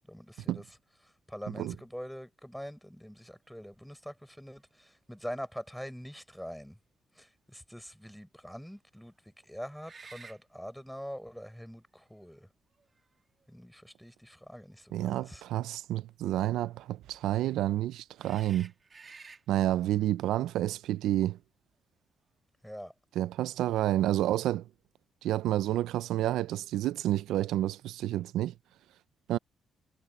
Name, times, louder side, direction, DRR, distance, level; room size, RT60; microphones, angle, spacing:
voice 1, 0.1-0.6 1.0-6.8 7.1-9.1 9.4-12.5 13.5-15.4 22.6-22.9, equal, ahead, 4.5 m, -44 dB
sound 1, 4.6-4.7 5.2-5.3 9.8-10.4 11.6-11.7 12.7-13.5 15.5-15.7 18.2-19.4, right 4 dB, 35° right, 2.2 m, -51 dB
voice 2, 14.9-18.7 19.5-21.4 23.2-24.6 25.2-28.5 29.3-29.4, right 13 dB, 85° right, 0.5 m, -29 dB
cardioid pair, 90°, 0 cm